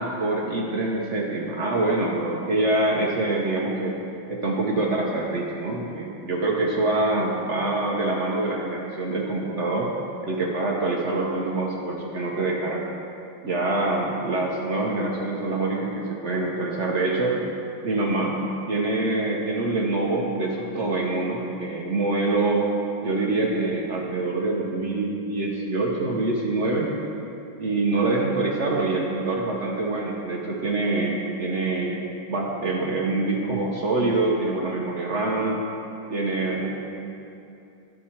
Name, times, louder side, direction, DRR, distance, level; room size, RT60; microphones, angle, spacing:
voice 1, 0.0-3.9 4.3-9.9 10.2-12.8 13.4-17.4 17.8-18.4 18.7-22.7 23.0-26.9 27.6-32.0 32.3-35.7 36.1-36.7, right 2 dB, 75° right, -3 dB, 0.6 m, -25 dB
13.0 x 4.6 x 4.3 m, 2.7 s
omnidirectional pair, 2.3 m